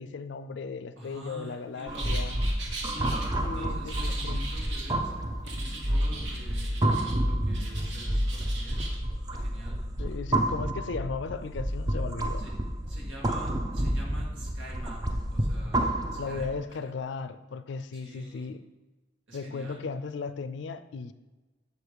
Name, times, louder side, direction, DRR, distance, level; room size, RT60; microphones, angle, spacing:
voice 1, 0.0-2.4 3.4-4.4 10.0-12.5 16.2-18.6 19.3-21.1, left 4 dB, 65° left, 12 dB, 0.4 m, -36 dB
voice 2, 1.0-2.1 2.7-5.1 5.4-6.9 7.2-8.9 9.3-9.8 12.4-12.5 12.9-16.9 17.9-18.5 19.3-19.8, right 1 dB, 85° right, -3 dB, 2.0 m, -46 dB
sound 1, 1.9-16.6, right 1 dB, 20° right, 0.5 m, -29 dB
sound 2, 1.9-3.3 3.9-4.9 5.5-7.2 7.5-9.0, right 3 dB, 70° right, 1.3 m, -40 dB
6.8 x 4.8 x 5.0 m, 1.2 s
head